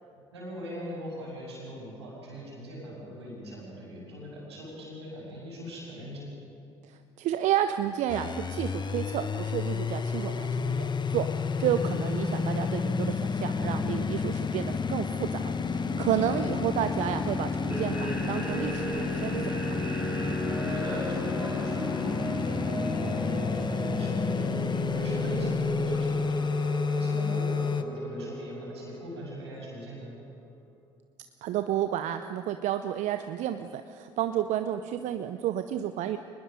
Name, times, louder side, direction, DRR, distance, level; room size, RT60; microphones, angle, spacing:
voice 1, 0.3-6.3 11.7-12.0 16.1-16.3 20.6-30.1, equal, 90° right, -4 dB, 6.7 m, -41 dB
voice 2, 7.2-19.7 31.4-36.2, right 11 dB, 60° right, 9 dB, 0.7 m, -31 dB
sound 1, 8.1-27.8, left 5 dB, 35° left, 1.1 m, -30 dB
sound 2, 17.7-30.4, right 1 dB, 10° right, 5.7 m, -35 dB
24.5 x 20.5 x 5.2 m, 2.5 s
hypercardioid pair, 55°, 14 cm